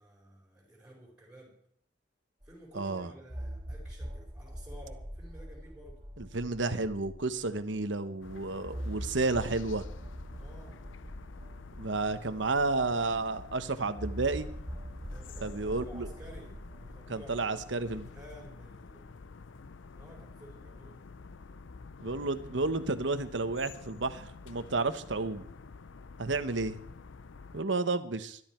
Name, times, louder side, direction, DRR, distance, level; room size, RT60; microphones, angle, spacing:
voice 1, 0.0-1.6 2.4-6.0 10.3-10.8 11.9-12.5 15.1-17.6 18.1-19.2 20.0-21.0, equal, 5° right, -5 dB, 4.6 m, -53 dB
sound 1, 2.4-2.5 3.3-7.8 8.6-13.3 14.0-17.0, equal, 25° right, 3.3 m, -43 dB
voice 2, 2.7-3.1 6.2-9.9 11.8-14.5 15.4-16.1 17.1-18.1 22.0-25.5 26.2-26.8 27.5-28.4, right 3 dB, 70° right, 11 dB, 1.1 m, -31 dB
sound 2, 8.2-27.6, left 4 dB, 85° left, 0.6 m, -49 dB
21.0 x 13.0 x 4.5 m, 0.65 s
head